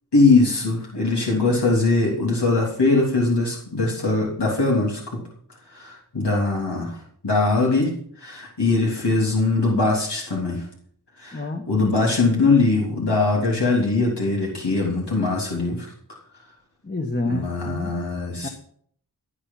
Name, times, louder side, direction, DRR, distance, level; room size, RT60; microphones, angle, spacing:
voice 1, 0.1-5.2 5.7-7.0 7.2-10.7 11.2-15.9 17.3-18.5, left 3 dB, 90° left, -3 dB, 3.3 m, -21 dB
voice 2, 11.3-11.7 16.8-17.9 18.4-18.5, left 2 dB, 25° left, 3 dB, 1.4 m, -28 dB
18.0 x 8.6 x 5.8 m, 0.62 s
wide cardioid pair, 60°, 39 cm